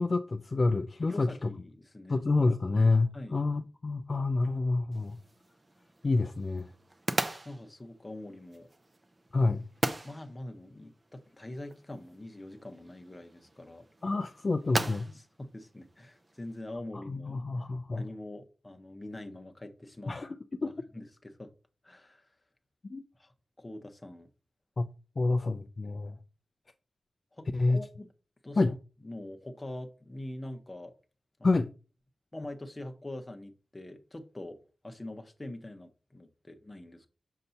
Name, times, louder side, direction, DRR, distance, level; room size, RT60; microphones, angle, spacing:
voice 1, 0.0-1.3 2.1-5.2 6.0-6.7 9.3-9.6 14.0-15.1 17.1-18.0 20.1-20.3 20.6-20.7 22.9-23.0 24.8-24.9 25.2-26.1 27.5-27.8 28.6-28.7 31.4-31.7, left 3 dB, 40° left, 0.4 m, -28 dB
voice 2, 1.1-2.2 3.1-3.4 7.4-8.7 10.0-13.9 14.8-17.4 17.9-20.1 20.5-21.5 21.8-22.3 23.2-24.3 27.3-28.1 28.4-28.8 29.0-30.9 31.4-31.6 32.3-34.6 34.8-37.1, left 1 dB, 20° left, 0.8 m, -44 dB
sound 1, 4.9-16.6, right 2 dB, 25° right, 0.5 m, -40 dB
6.5 x 2.7 x 5.6 m
wide cardioid pair, 135°, 0 cm